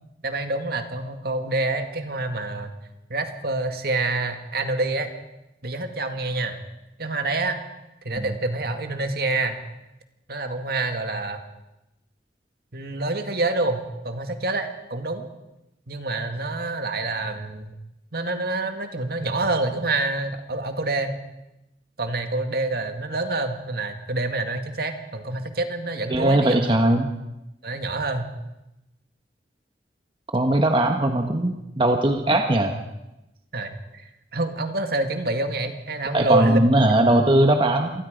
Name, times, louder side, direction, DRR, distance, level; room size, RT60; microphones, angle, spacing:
voice 1, 0.2-2.7 3.1-5.1 5.6-6.6 7.0-7.6 8.0-9.6 10.3-11.4 12.7-15.3 15.9-17.7 18.1-21.2 22.0-26.7 27.6-28.3 33.5-34.0 34.3-36.6, right 2 dB, 60° right, 6 dB, 2.1 m, -27 dB
voice 2, 26.1-27.1 30.3-32.8 36.1-37.9, right 1 dB, 30° right, 4 dB, 1.3 m, -19 dB
26.5 x 19.5 x 5.2 m, 0.94 s
head